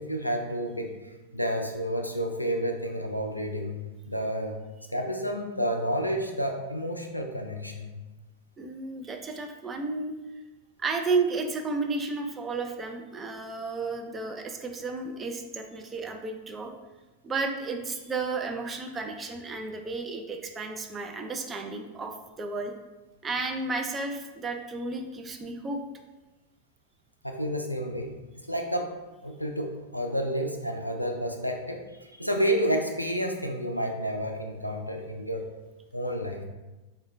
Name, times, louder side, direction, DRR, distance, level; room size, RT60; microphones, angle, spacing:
voice 1, 0.0-3.8 4.1-4.6 4.9-7.9 27.2-28.9 29.2-35.4 35.9-36.4, equal, 90° left, 2 dB, 0.4 m, -30 dB
voice 2, 8.6-10.1 10.8-16.7 17.2-22.7 23.2-25.8, right 3 dB, 20° right, 4 dB, 0.3 m, -32 dB
3.6 x 2.2 x 3.1 m, 1.1 s
figure-of-eight pair, 90°, 0 cm